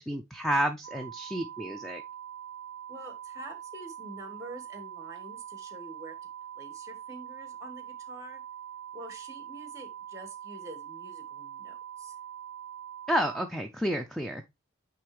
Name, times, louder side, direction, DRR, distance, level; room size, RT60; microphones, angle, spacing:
voice 1, 0.1-2.0 13.1-14.4, equal, ahead, 0.5 m, -30 dB
sound 1, 0.8-13.4, right 10 dB, 90° right, 0.5 m, -43 dB
voice 2, 2.9-6.1 6.5-8.4 8.9-12.1, right 1 dB, 15° right, 1.5 m, -46 dB
8.9 x 3.4 x 3.4 m
head